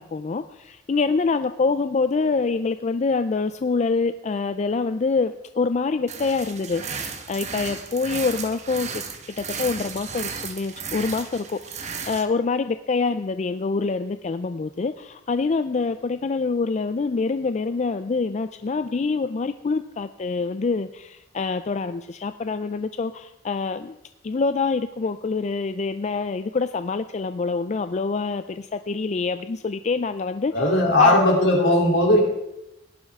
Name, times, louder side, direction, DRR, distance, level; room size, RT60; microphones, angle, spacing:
voice 1, 0.0-8.9 9.3-23.9 24.2-30.5 31.0-31.2 31.6-31.7, left 4 dB, 35° left, 10 dB, 0.4 m, -26 dB
sound 1, 6.1-12.2, right 6 dB, 35° right, 1.1 m, -34 dB
voice 2, 30.5-32.2, left 1 dB, 70° left, -1 dB, 3.3 m, -17 dB
17.5 x 10.5 x 3.6 m, 0.90 s
head